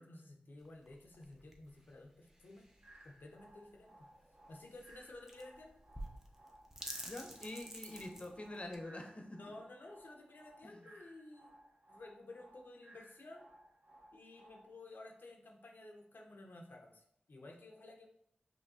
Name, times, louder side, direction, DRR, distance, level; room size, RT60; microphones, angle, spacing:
voice 1, 0.0-2.6 3.0-4.1 4.5-5.8 9.4-11.5 11.9-13.5 14.1-18.1, left 2 dB, 70° left, 1 dB, 0.5 m, -54 dB
sound 1, 0.6-8.8, right 1 dB, 10° right, 0.7 m, -51 dB
sound 2, 2.8-14.8, right 1 dB, 65° right, 1.0 m, -62 dB
voice 2, 7.0-9.4 10.6-10.8, left 1 dB, 35° left, 3 dB, 0.7 m, -46 dB
5.3 x 3.0 x 2.8 m, 0.71 s
cardioid pair, 50°, 3 cm